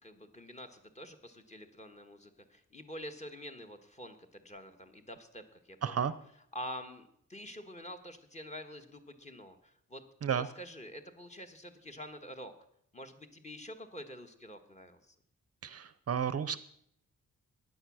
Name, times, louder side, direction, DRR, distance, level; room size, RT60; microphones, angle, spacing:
voice 1, 0.0-6.1 6.5-10.0 10.3-12.5 12.9-15.1, equal, 20° left, 5 dB, 1.4 m, -47 dB
voice 2, 5.8-6.1 10.2-10.5 15.6-16.6, right 7 dB, 50° right, 15 dB, 0.6 m, -32 dB
16.0 x 10.5 x 6.2 m, 0.70 s
wide cardioid pair, 170°, 32 cm